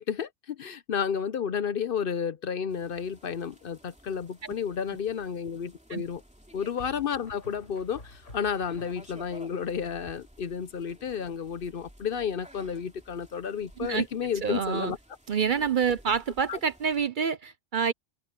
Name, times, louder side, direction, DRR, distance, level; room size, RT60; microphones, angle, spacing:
voice 1, 0.0-6.2 6.5-15.0 16.5-16.6, left 7 dB, 55° left, 0.8 m, -32 dB
sound 1, 2.7-17.1, equal, 5° right, 2.8 m, -55 dB
sound 2, 4.1-4.6 6.8-9.4, left 2 dB, 90° left, 4.7 m, -50 dB
voice 2, 14.4-14.9 15.3-17.9, right 6 dB, 50° right, 0.7 m, -27 dB
omnidirectional pair, 1.2 m